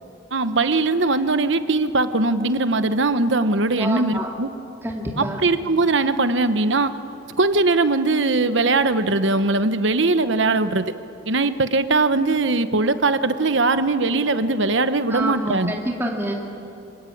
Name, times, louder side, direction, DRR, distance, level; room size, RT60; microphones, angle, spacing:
voice 1, 0.3-4.5 5.2-6.9 7.4-10.9 11.3-15.7, right 3 dB, 70° right, 10 dB, 1.1 m, -20 dB
voice 2, 3.8-4.3 4.8-5.4 10.5-10.6 15.1-16.3, right 1 dB, 10° right, -1 dB, 2.2 m, -27 dB
25.5 x 25.5 x 8.8 m, 2.8 s
head